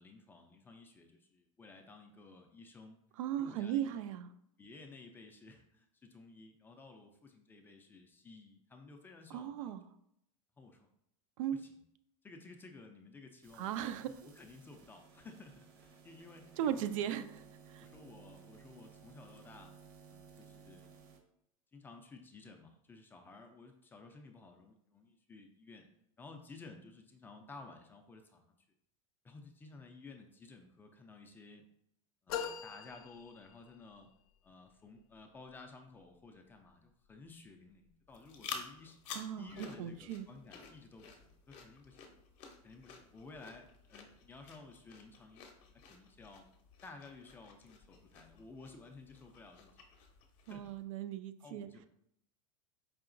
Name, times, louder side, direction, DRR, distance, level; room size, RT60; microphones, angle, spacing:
voice 1, 0.0-3.0 3.4-4.0 4.6-9.8 10.6-10.9 11.5-11.8 12.2-13.9 14.2-16.9 17.8-19.7 20.1-20.9 21.7-25.9 26.2-28.6 29.2-31.7 32.2-34.1 34.4-39.0 39.4-42.1 42.6-46.5 46.8-49.8 50.5-50.7 51.4-51.9, left 3 dB, 10° left, 4 dB, 0.3 m, -55 dB
voice 2, 3.2-4.3 9.3-9.8 11.4-11.6 13.5-14.1 16.6-17.9 39.1-40.3 50.5-51.7, right 10 dB, 75° right, 11 dB, 0.4 m, -37 dB
sound 1, 13.4-21.2, right 6 dB, 55° right, 0.8 m, -58 dB
sound 2, 32.3-34.0, left 8 dB, 90° left, 0.5 m, -42 dB
sound 3, 38.1-50.8, left 6 dB, 45° left, 0.6 m, -52 dB
4.8 x 2.8 x 2.5 m, 0.75 s
supercardioid pair, 145°, 17 cm